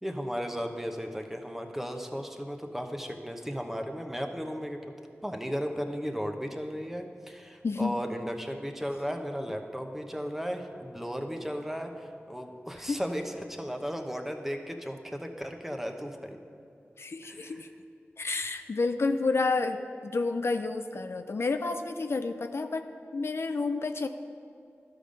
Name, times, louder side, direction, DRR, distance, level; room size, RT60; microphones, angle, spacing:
voice 1, 0.0-4.8 5.2-16.4 17.2-17.6, equal, 5° right, 4 dB, 0.9 m, -35 dB
voice 2, 7.6-8.0 12.8-13.0 17.0-17.7 18.2-24.1, left 3 dB, 60° left, 8 dB, 0.4 m, -30 dB
12.0 x 5.3 x 5.2 m, 2.5 s
cardioid pair, 45°, 5 cm